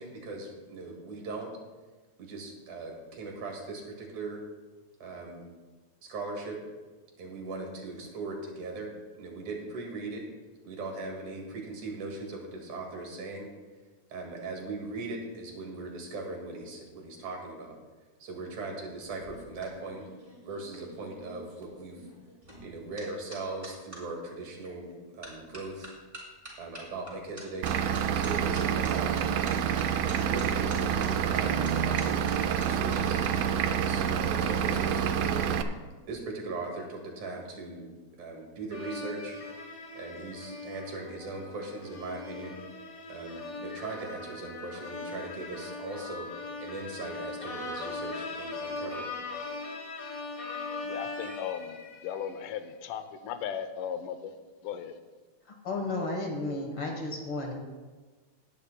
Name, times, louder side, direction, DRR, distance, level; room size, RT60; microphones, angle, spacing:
voice 1, 0.0-1.5 2.2-4.4 5.0-5.5 6.0-6.6 7.2-10.2 10.6-13.5 14.1-17.8 18.2-20.0 20.4-22.0 22.6-25.9 26.6-27.7 28.1-29.7 30.3-33.2 33.7-35.4 36.1-37.9 38.2-39.4 39.9-42.6 43.1-46.3 46.6-49.1, right 3 dB, 70° right, 0 dB, 3.3 m, -39 dB
sound 1, 19.0-24.0 24.6-24.9 25.2-33.3 33.6-34.0, right 1 dB, 10° right, 3.8 m, -47 dB
Vehicle / Engine, 27.6-35.6, right 8 dB, 90° right, 2.2 m, -27 dB
sound 2, 38.7-52.4, left 3 dB, 70° left, 0.8 m, -40 dB
voice 2, 50.8-54.3 54.6-55.0, left 8 dB, 85° left, 10 dB, 2.3 m, -37 dB
voice 3, 55.6-57.5, left 2 dB, 55° left, 1 dB, 1.8 m, -33 dB
18.5 x 10.5 x 2.2 m, 1.3 s
omnidirectional pair, 3.6 m